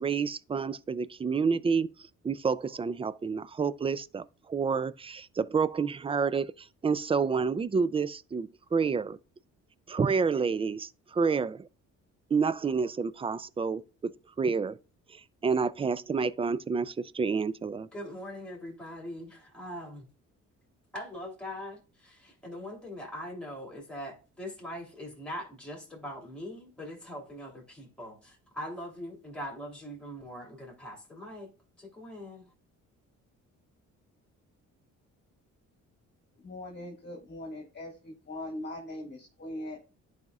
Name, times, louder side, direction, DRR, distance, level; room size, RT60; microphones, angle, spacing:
voice 1, 0.0-1.9 2.2-9.2 9.9-11.7 12.3-14.1 14.4-14.8 15.1-17.9, right 5 dB, 20° right, 0.3 m, -29 dB
voice 2, 17.9-20.1 20.9-31.5 31.8-32.5, equal, 5° left, 3.0 m, -42 dB
voice 3, 36.4-39.8, left 1 dB, 35° left, 1.7 m, -40 dB
10.5 x 4.9 x 2.3 m
cardioid pair, 90°, 30 cm